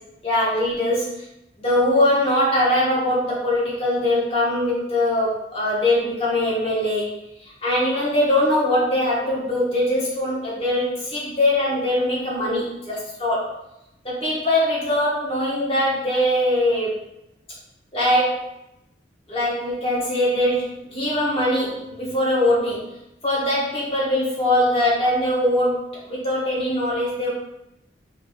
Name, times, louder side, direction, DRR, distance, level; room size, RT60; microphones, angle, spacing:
voice 1, 0.2-1.1 1.6-7.1 7.4-13.5 14.0-16.9 17.9-18.4 19.3-22.9 23.2-27.3, left 1 dB, 30° left, -6 dB, 1.3 m, -22 dB
4.3 x 3.4 x 2.4 m, 0.87 s
head